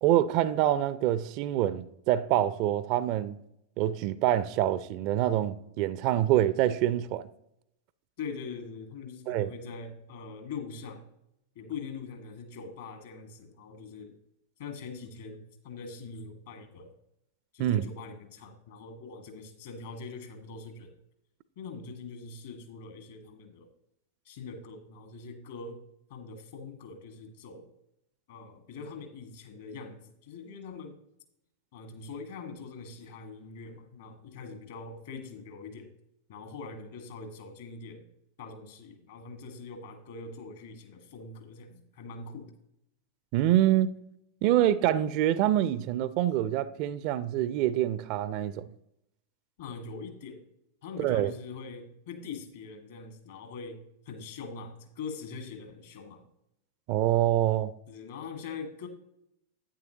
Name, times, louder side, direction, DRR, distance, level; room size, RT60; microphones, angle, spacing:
voice 1, 0.0-3.4 3.8-7.3 9.3-9.5 17.6-17.9 43.3-43.9 44.4-48.6 51.0-51.3 56.9-57.7, right 12 dB, 45° right, 0.4 m, -26 dB
voice 2, 8.2-11.1 11.5-14.1 14.6-16.9 17.5-20.9 21.5-23.7 24.2-25.8 26.1-27.7 28.3-31.0 31.7-35.9 36.3-38.0 38.4-42.5 49.6-50.4 50.8-56.2 57.9-58.9, left 4 dB, 60° left, 1.6 m, -43 dB
10.0 x 9.1 x 2.9 m
figure-of-eight pair, 90°, 0 cm